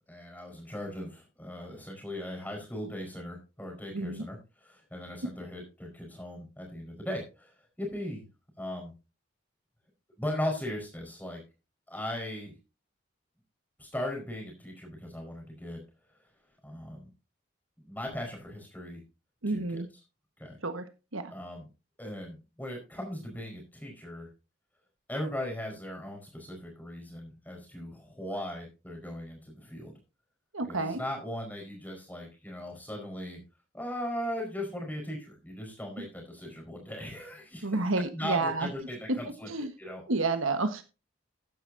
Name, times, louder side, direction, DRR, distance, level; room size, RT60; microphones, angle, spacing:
voice 1, 0.1-7.5 7.8-8.2 8.6-8.9 10.2-11.4 11.9-12.5 13.8-15.8 16.6-17.1 17.8-19.0 19.5-19.8 20.4-20.6 21.3-21.7 22.0-24.3 25.1-29.9 30.7-33.4 33.7-37.8 38.1-39.5 39.8-40.0, left 1 dB, 10° left, 1 dB, 4.8 m, -38 dB
voice 2, 3.9-4.2 19.4-19.9 20.6-20.8 21.1-21.3 30.5-31.0 36.0-36.1 37.6-38.7 39.5-39.7 40.1-40.8, right 3 dB, 85° right, 9 dB, 1.5 m, -30 dB
13.5 x 10.5 x 2.8 m, 0.29 s
head